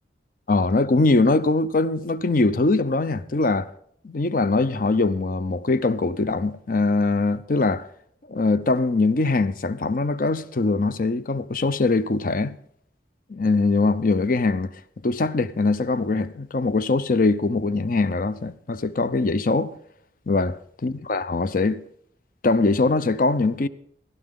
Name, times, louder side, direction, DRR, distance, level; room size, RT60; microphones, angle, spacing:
voice 1, 0.5-3.7 4.0-7.8 8.3-12.6 13.3-14.7 15.0-19.7 20.3-20.6 20.8-21.8 22.4-23.7, left 3 dB, 50° left, 0.6 m, -22 dB
15.5 x 12.5 x 3.7 m
head